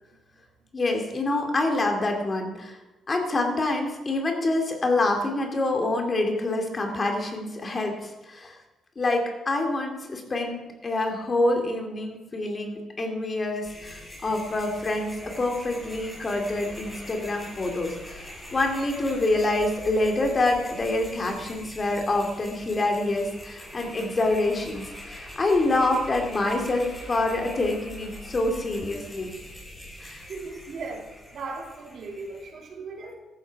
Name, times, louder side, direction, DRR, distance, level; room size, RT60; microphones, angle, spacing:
voice 1, 0.7-2.8 3.1-8.6 9.0-29.3 30.0-30.2, left 2 dB, 35° left, 3 dB, 2.7 m, -26 dB
sound 1, 13.6-32.5, left 1 dB, 15° left, 5.6 m, -43 dB
voice 2, 30.3-33.1, right 3 dB, 60° right, 0 dB, 3.7 m, -37 dB
14.5 x 13.0 x 4.8 m, 1.1 s
cardioid pair, 90°, 0 cm